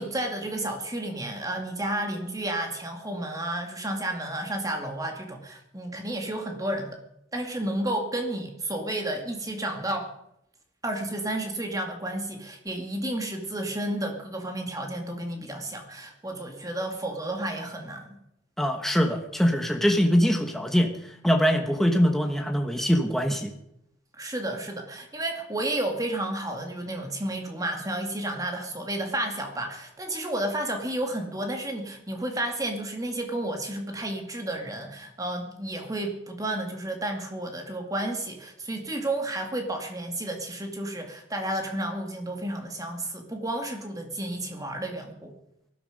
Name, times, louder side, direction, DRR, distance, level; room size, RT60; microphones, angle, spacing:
voice 1, 0.0-7.0 7.3-10.1 10.8-18.2 24.2-45.3, right 1 dB, 20° right, 3 dB, 2.3 m, -31 dB
voice 2, 18.6-20.9 21.2-23.5, equal, ahead, 3 dB, 1.2 m, -23 dB
18.0 x 12.5 x 5.2 m, 0.79 s
head